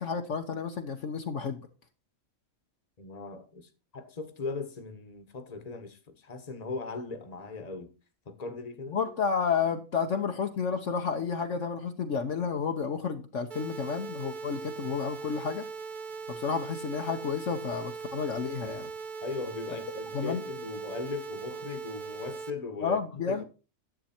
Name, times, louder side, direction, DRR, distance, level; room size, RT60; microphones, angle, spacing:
voice 1, 0.0-1.7 8.9-15.7 16.3-18.9 20.1-20.4 22.8-23.4, left 6 dB, 60° left, 1.2 m, -31 dB
voice 2, 3.0-7.9 8.3-9.0 19.2-23.0 23.3-23.4, left 4 dB, 30° left, 1.3 m, -38 dB
sound 1, 13.5-22.5, right 5 dB, 40° right, 0.8 m, -40 dB
10.5 x 7.7 x 4.3 m
omnidirectional pair, 1.5 m